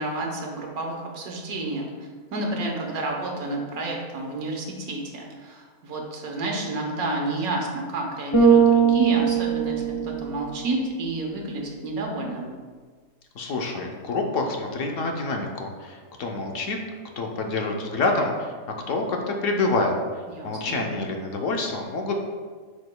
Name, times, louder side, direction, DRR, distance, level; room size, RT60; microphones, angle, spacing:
voice 1, 0.0-12.5 20.3-20.8, right 2 dB, 80° right, 0 dB, 1.5 m, -30 dB
Bass guitar, 8.3-10.7, right 7 dB, 20° left, 1.1 m, -20 dB
voice 2, 13.3-16.8 17.2-18.5 18.9-19.9 20.4-22.2, left 3 dB, 65° left, 2 dB, 1.0 m, -27 dB
8.4 x 5.0 x 2.2 m, 1.5 s
omnidirectional pair, 1.5 m